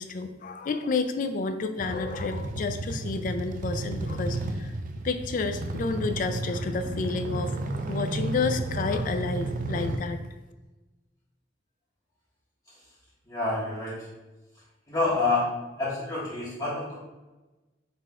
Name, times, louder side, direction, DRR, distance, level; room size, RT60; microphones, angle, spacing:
voice 1, 0.0-4.7 5.0-7.5 7.9-10.2, left 4 dB, 45° left, 8 dB, 0.3 m, -30 dB
sound 1, 1.8-10.0, right 2 dB, 45° right, 0.3 m, -32 dB
voice 2, 13.3-13.9 14.9-15.4 15.8-16.9, left 3 dB, 20° left, -10 dB, 0.9 m, -27 dB
4.0 x 2.4 x 4.2 m, 1.1 s
head